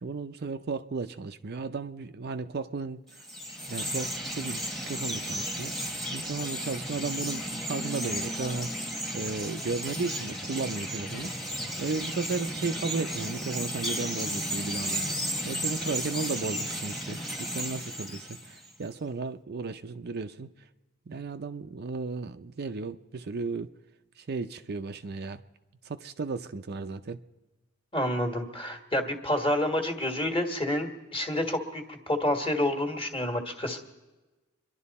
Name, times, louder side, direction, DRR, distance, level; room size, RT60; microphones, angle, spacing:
voice 1, 0.0-3.0 3.7-5.7 6.1-8.7 9.1-11.3 11.8-20.5 21.1-23.7 24.2-25.4 25.8-27.2, right 4 dB, 45° right, 0.5 m, -34 dB
Chirp tweet, 3.1-18.7, equal, ahead, 1.2 m, -34 dB
voice 2, 27.9-33.8, left 1 dB, 25° left, 1.7 m, -29 dB
25.5 x 11.5 x 4.2 m
head